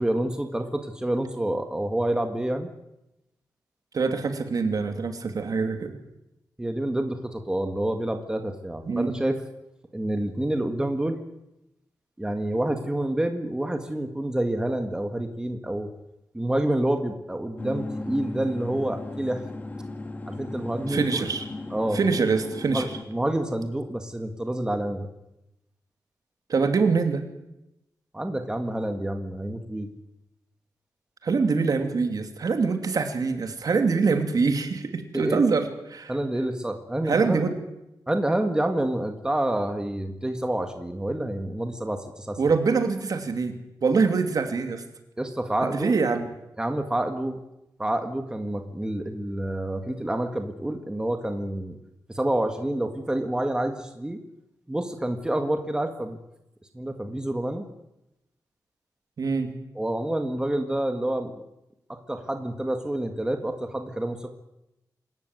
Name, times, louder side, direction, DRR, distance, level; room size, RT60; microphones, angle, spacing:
voice 1, 0.0-2.7 6.6-9.4 9.9-11.2 12.2-15.9 16.3-19.4 20.3-21.3 21.7-22.0 22.7-25.1 28.1-29.9 35.1-35.4 36.1-37.5 38.1-42.4 45.2-45.9 46.6-47.4 47.8-51.8 52.1-54.2 54.7-56.2 56.7-57.7 59.8-61.4 61.9-64.3, right 1 dB, 10° right, 6 dB, 1.9 m, -28 dB
voice 2, 3.9-6.0 8.9-9.2 20.9-21.5 21.9-22.8 26.5-27.2 31.2-36.1 37.0-37.5 42.4-44.8 45.6-46.2 59.2-59.5, right 4 dB, 60° right, 6 dB, 2.8 m, -24 dB
sound 1, 17.6-23.0, left 2 dB, 20° left, 2.0 m, -36 dB
27.0 x 14.5 x 9.4 m, 0.88 s
wide cardioid pair, 175°, 7 cm